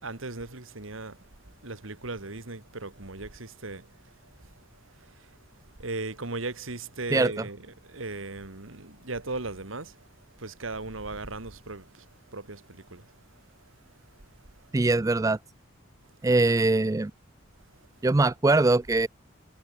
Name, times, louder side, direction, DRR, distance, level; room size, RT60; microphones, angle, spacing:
voice 1, 0.0-1.3 1.6-4.6 5.0-5.3 5.8-10.1 10.4-13.1, right 3 dB, 80° right, 2.3 m, -37 dB
voice 2, 14.7-15.4 16.2-17.1 18.0-19.1, right 2 dB, 15° right, 0.3 m, -22 dB
head